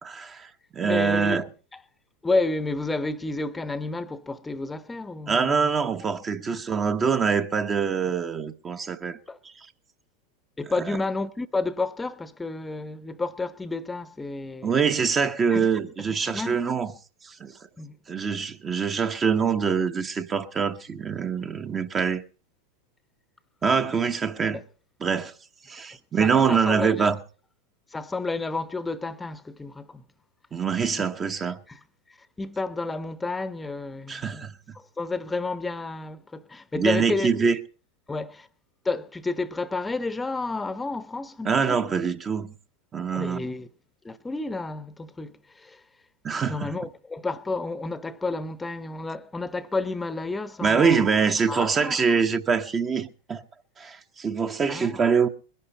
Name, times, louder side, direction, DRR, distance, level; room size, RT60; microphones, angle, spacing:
voice 1, 0.0-1.4 5.3-9.2 14.6-16.9 17.2-17.6 18.1-22.2 23.6-24.6 25.0-25.3 25.7-27.2 30.5-31.6 34.1-34.5 36.7-37.6 41.4-42.5 42.9-43.5 46.2-46.7 50.6-53.4 53.8-55.3, right 6 dB, 20° right, 0.9 m, -24 dB
voice 2, 0.8-1.4 1.7-1.8 2.2-5.7 6.5-6.6 9.3-9.4 10.6-14.7 15.5-15.7 16.1-16.6 17.8-18.0 26.2-27.1 27.9-30.0 31.0-31.1 31.7-31.8 32.4-34.5 34.7-37.3 38.1-38.5 38.8-41.8 43.1-43.7 44.0-45.8 46.5-51.1 51.5-52.0 54.7-55.0, left 3 dB, 10° left, 0.9 m, -31 dB
22.0 x 11.0 x 4.1 m
figure-of-eight pair, 90°, 0 cm